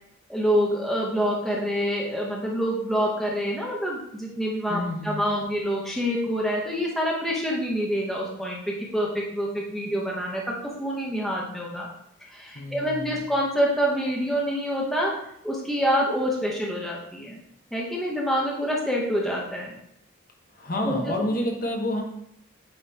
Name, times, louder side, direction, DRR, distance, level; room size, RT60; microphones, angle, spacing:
voice 1, 0.3-11.9 12.3-15.1 15.4-17.4 17.7-19.8 20.8-21.1, equal, ahead, -3 dB, 0.9 m, -26 dB
voice 2, 4.7-5.2 12.5-13.2 20.5-22.0, left 1 dB, 45° left, 1 dB, 0.9 m, -29 dB
9.2 x 3.1 x 3.4 m, 0.74 s
head